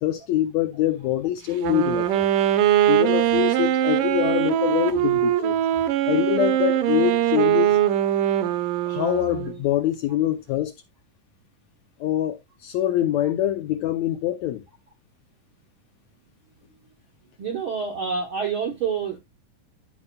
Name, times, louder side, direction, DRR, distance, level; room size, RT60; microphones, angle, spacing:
voice 1, 0.0-2.3 2.9-5.6 6.1-7.8 8.9-10.7 12.0-14.6, left 12 dB, 75° left, 1.7 m, -24 dB
Wind instrument woodwind instrument, 1.5-9.6, right 12 dB, 75° right, 2.4 m, -22 dB
voice 2, 17.4-19.2, right 6 dB, 60° right, 1.4 m, -28 dB
12.5 x 5.4 x 2.3 m
omnidirectional pair, 3.9 m